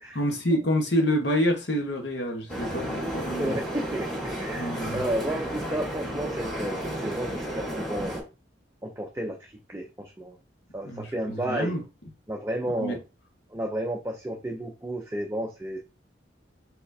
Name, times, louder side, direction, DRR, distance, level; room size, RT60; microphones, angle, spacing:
voice 1, 0.1-3.6 4.5-5.1 10.8-11.8 12.8-13.0, equal, 65° left, 1.1 m, -27 dB
sound 1, 2.5-8.2, right 1 dB, ahead, 1.7 m, -32 dB
voice 2, 3.4-8.2 8.8-10.4 10.7-11.7 12.3-13.0 13.5-15.8, right 1 dB, 15° right, 0.5 m, -32 dB
4.3 x 4.2 x 2.7 m
head